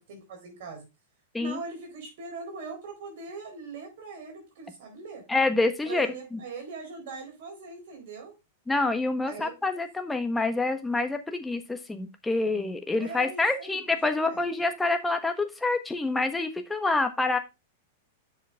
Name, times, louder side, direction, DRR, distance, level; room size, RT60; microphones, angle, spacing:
voice 1, 0.1-0.9 1.4-5.2 5.9-8.3 9.2-9.5 10.1-10.2 13.0-14.4, right 4 dB, 65° right, 1 dB, 4.3 m, -41 dB
voice 2, 5.3-6.4 8.7-17.4, left 3 dB, 10° left, 7 dB, 1.4 m, -27 dB
8.0 x 6.2 x 3.6 m, 0.25 s
hypercardioid pair, 120°, 0 cm